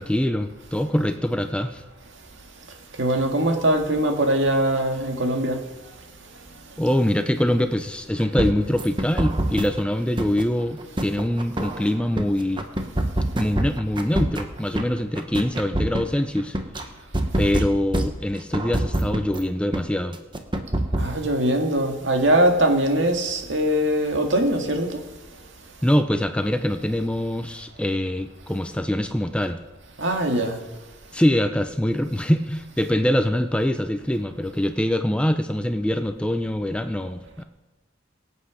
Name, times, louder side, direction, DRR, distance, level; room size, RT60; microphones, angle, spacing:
voice 1, 0.0-1.8 6.8-12.7 13.3-16.5 17.4-20.2 25.8-29.6 31.1-37.4, left 1 dB, 5° left, 0.5 m, -24 dB
voice 2, 3.0-5.6 21.0-25.0 30.0-30.6, right 1 dB, 65° right, 2.0 m, -21 dB
sound 1, 8.4-9.8 10.2-12.2 12.6-14.8 15.2-16.8 17.1-19.4 19.7-19.8 20.1-21.1, right 1 dB, 25° right, 1.1 m, -25 dB
23.0 x 8.2 x 5.0 m
head